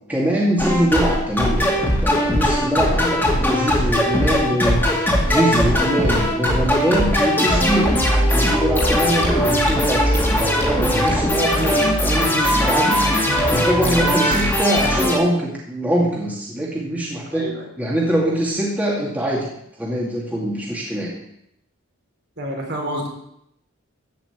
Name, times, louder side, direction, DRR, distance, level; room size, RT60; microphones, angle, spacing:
voice 1, 0.1-8.0 8.3-17.5 17.8-19.5 19.8-21.1, right 1 dB, 5° right, -4 dB, 2.3 m, -23 dB
sound 1, 0.6-15.2, equal, 10° left, 2.3 m, -19 dB
voice 2, 17.3-17.7 22.4-23.1, equal, 50° right, -1 dB, 3.9 m, -28 dB
14.5 x 5.9 x 8.6 m, 0.76 s
head